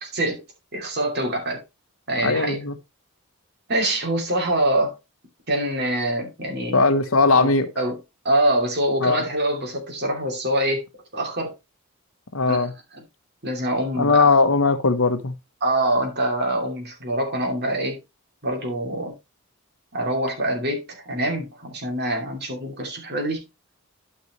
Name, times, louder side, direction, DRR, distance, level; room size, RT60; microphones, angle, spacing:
voice 1, 0.0-0.4 0.7-1.6 2.1-2.6 3.7-5.0 5.5-6.9 7.3-8.0 8.2-10.8 11.1-11.5 12.5-12.7 13.4-14.3 15.6-18.0 18.4-19.1 19.9-23.4, right 1 dB, 45° right, 2.8 m, -25 dB
voice 2, 2.2-2.7 6.7-7.7 9.0-9.2 12.3-12.7 14.0-15.3, left 3 dB, 65° left, 1.1 m, -19 dB
12.5 x 5.4 x 3.1 m
head